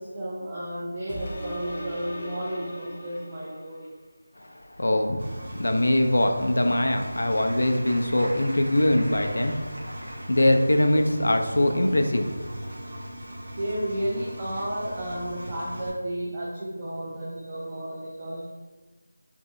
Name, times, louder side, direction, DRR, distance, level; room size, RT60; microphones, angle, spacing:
voice 1, 0.0-3.9 13.6-18.5, right 1 dB, 20° right, -6 dB, 0.4 m, -32 dB
sound 1, 1.1-4.0 4.5-4.6, equal, 25° left, 0.7 m, -39 dB
voice 2, 4.4-12.6, left 1 dB, 85° left, 5 dB, 0.5 m, -23 dB
Engine, 5.2-15.9, equal, 40° right, 0.8 m, -39 dB
Applause, 6.6-11.1, equal, 70° right, 0.9 m, -44 dB
3.4 x 2.1 x 3.8 m, 1.3 s
figure-of-eight pair, 175°, 0 cm